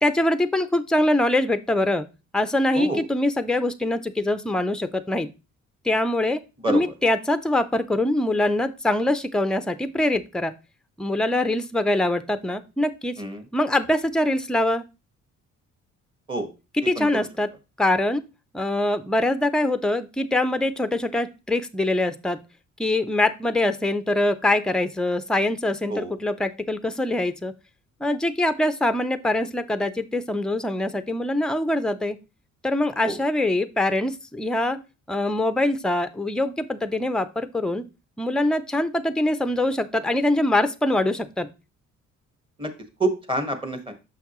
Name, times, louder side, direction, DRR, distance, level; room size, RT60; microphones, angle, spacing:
voice 1, 0.0-2.0 2.3-5.3 5.8-6.4 6.7-10.6 11.0-13.2 13.5-14.8 16.7-17.5 17.8-18.2 18.5-22.4 22.8-27.5 28.0-32.2 32.6-34.8 35.1-37.8 38.2-41.5, left 1 dB, ahead, 12 dB, 0.5 m, -23 dB
voice 2, 43.0-43.9, right 2 dB, 15° right, 7 dB, 1.4 m, -27 dB
6.4 x 5.7 x 3.0 m, 0.28 s
cardioid pair, 90°, 30 cm